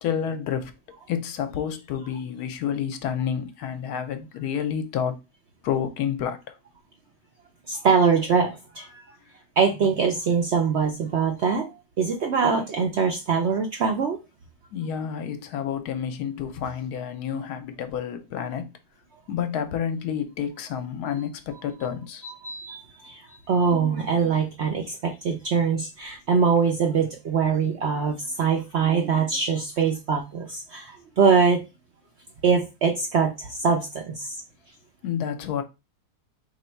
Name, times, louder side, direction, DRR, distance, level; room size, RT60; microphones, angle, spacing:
voice 1, 0.0-0.7 1.1-5.1 5.6-6.6 14.7-18.7 19.3-22.2 35.0-35.6, left 8 dB, 75° left, 1.1 m, -29 dB
voice 2, 7.7-9.2 9.6-14.2 22.2-31.6 32.4-34.4, right 5 dB, 65° right, 0.6 m, -23 dB
3.0 x 2.7 x 4.3 m
omnidirectional pair, 1.7 m